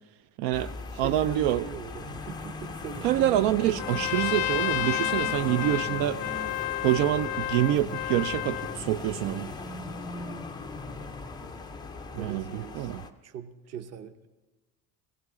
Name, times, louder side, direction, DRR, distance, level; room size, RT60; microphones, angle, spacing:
voice 1, 0.4-0.7 1.0-1.6 3.0-6.2 6.8-9.5 12.2-13.0, right 13 dB, 70° right, 0.5 m, -26 dB
sound 1, 0.5-13.1, left 3 dB, 10° left, 0.4 m, -38 dB
voice 2, 0.9-3.5 12.1-12.9 13.2-14.3, right 7 dB, 35° right, 0.8 m, -41 dB
Trumpet, 3.7-8.8, left 17 dB, 70° left, 0.6 m, -31 dB
21.0 x 16.0 x 3.6 m
cardioid pair, 155°, 45 cm